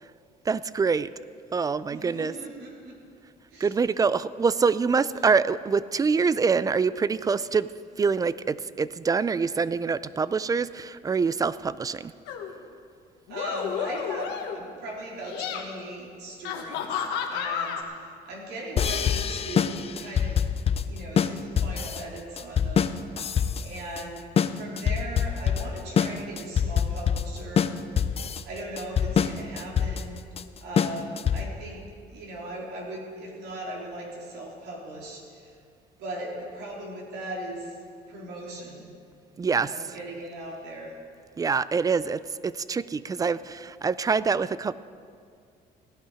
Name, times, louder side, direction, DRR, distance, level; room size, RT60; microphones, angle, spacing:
voice 1, 0.5-1.1 1.5-2.3 3.6-7.7 8.0-12.1 39.4-39.7 41.4-44.7, right 5 dB, 20° right, 17 dB, 0.4 m, -25 dB
voice 2, 1.9-2.9 3.5-3.7 13.3-20.4 20.8-24.2 24.5-27.7 28.1-30.2 30.6-31.8 32.1-35.5 36.0-37.8 38.1-38.9 39.5-40.9, right 1 dB, 80° right, -3 dB, 3.7 m, -39 dB
sound 1, 12.3-12.5 13.3-14.7 15.2-15.6 16.4-17.8, left 7 dB, 85° left, 1.4 m, -31 dB
sound 2, 18.8-31.7, left 7 dB, 35° left, 0.6 m, -25 dB
16.5 x 11.5 x 4.9 m, 2.2 s
cardioid pair, 110°, 17 cm